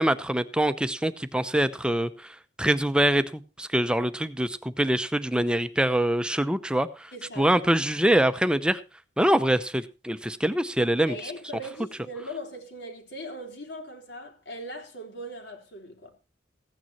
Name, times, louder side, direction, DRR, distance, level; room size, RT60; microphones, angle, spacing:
voice 1, 0.0-7.1 7.4-8.8 9.2-11.2, right 1 dB, 5° right, 0.7 m, -24 dB
voice 2, 7.1-7.5 11.1-16.1, equal, 65° left, 3.5 m, -39 dB
15.5 x 9.2 x 4.3 m
head